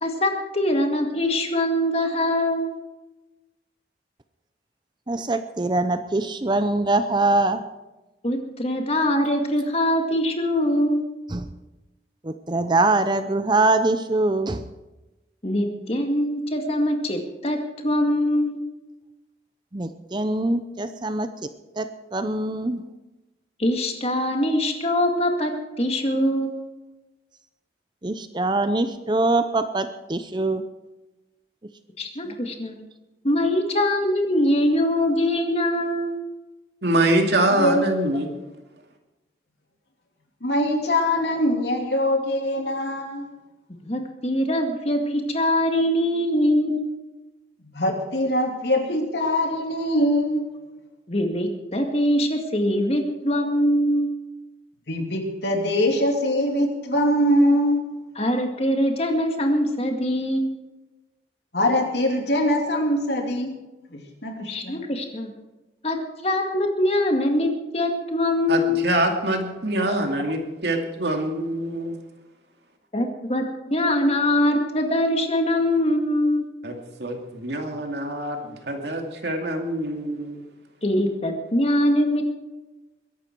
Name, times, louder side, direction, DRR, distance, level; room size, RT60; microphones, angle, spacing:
voice 1, 0.0-2.8 8.2-11.1 15.4-18.6 23.6-25.5 25.8-26.6 32.0-32.8 33.2-36.2 43.8-46.9 51.1-54.1 58.2-60.6 64.4-65.3 65.8-66.0 66.2-68.9 72.9-76.5 80.8-82.2, left 1 dB, 35° left, 4 dB, 2.0 m, -23 dB
voice 2, 5.1-7.6 11.3-11.4 12.2-14.6 19.7-21.3 21.8-22.8 28.0-30.6, right 2 dB, 25° right, 10 dB, 0.6 m, -23 dB
voice 3, 36.8-38.3 68.5-72.0 76.6-76.7 77.0-80.4, right 1 dB, 70° right, 3 dB, 2.4 m, -24 dB
voice 4, 40.4-43.2 47.7-50.4 54.9-57.8 61.5-63.6 64.2-64.8, left 1 dB, 70° left, 2 dB, 2.9 m, -22 dB
22.0 x 11.5 x 4.6 m, 1.1 s
head